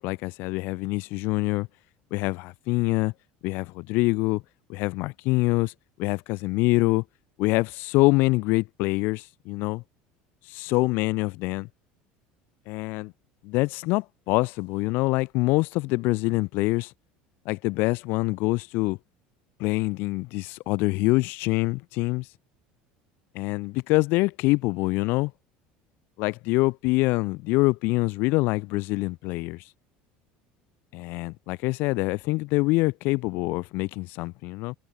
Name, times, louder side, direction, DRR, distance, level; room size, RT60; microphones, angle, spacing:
voice 1, 0.0-1.7 2.1-3.1 3.4-4.4 4.7-5.7 6.0-7.0 7.4-9.8 10.5-11.7 12.7-13.1 13.4-16.9 17.5-19.0 19.6-22.3 23.3-25.3 26.2-29.6 30.9-34.7, left 23 dB, 65° left, 3.9 m, -25 dB
cardioid pair, 140°, 4 cm